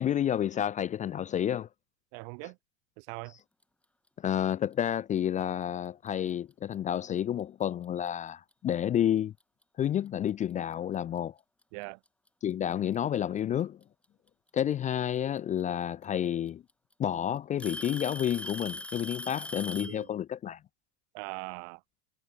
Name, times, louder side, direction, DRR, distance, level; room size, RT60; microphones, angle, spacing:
voice 1, 0.0-1.7 4.2-9.3 9.8-11.3 12.4-13.8 14.5-16.6 17.0-20.6, left 10 dB, 20° left, 0.5 m, -30 dB
voice 2, 2.1-2.6 3.0-3.3 11.7-12.0 19.8-20.1 21.1-21.8, right 40 dB or more, 55° right, 5.1 m, -41 dB
Alarm / Tick-tock, 6.1-6.3 7.2-7.3 8.1-8.2 9.8-9.9 11.2-11.3 12.5-13.0 14.7-14.8 16.0-16.1 16.5-16.9 17.6-20.0, left 1 dB, 5° left, 1.9 m, -40 dB
supercardioid pair, 135°, 41 cm